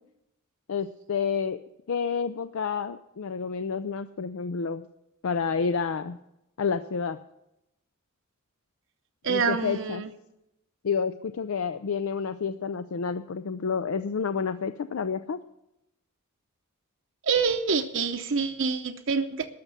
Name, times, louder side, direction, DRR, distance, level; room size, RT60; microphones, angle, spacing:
voice 1, 0.7-1.6 1.9-4.9 5.2-6.2 6.6-7.2 9.3-10.0 10.8-15.4, left 5 dB, 75° left, 10 dB, 0.5 m, -29 dB
voice 2, 9.2-10.1 17.2-19.5, right 5 dB, 60° right, 7 dB, 0.7 m, -26 dB
12.5 x 6.5 x 8.9 m, 0.87 s
head